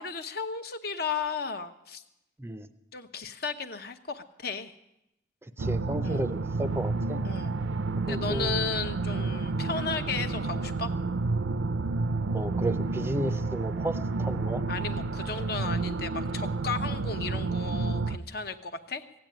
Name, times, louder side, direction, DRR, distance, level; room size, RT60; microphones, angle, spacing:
voice 1, 0.0-2.0 2.9-4.7 6.0-6.2 7.2-7.5 8.0-10.9 14.7-19.0, left 4 dB, 55° left, 9 dB, 0.9 m, -34 dB
voice 2, 5.6-7.2 8.0-8.6 12.3-14.7, right 1 dB, 15° right, 12 dB, 0.5 m, -33 dB
sound 1, 5.6-18.2, right 3 dB, 85° right, 0.6 m, -30 dB
15.5 x 8.9 x 9.1 m, 0.88 s
head